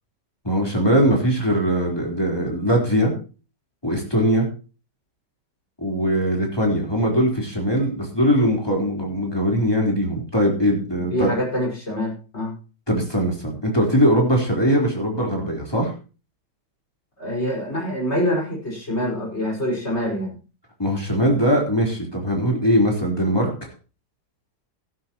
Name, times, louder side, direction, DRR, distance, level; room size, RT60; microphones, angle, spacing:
voice 1, 0.4-3.1 3.8-4.5 5.8-11.3 12.9-15.9 20.8-23.5, equal, 15° left, -1 dB, 4.1 m, -21 dB
voice 2, 11.1-12.5 17.2-20.4, equal, 35° left, -2 dB, 5.7 m, -25 dB
14.5 x 12.5 x 3.0 m, 0.34 s
omnidirectional pair, 1.9 m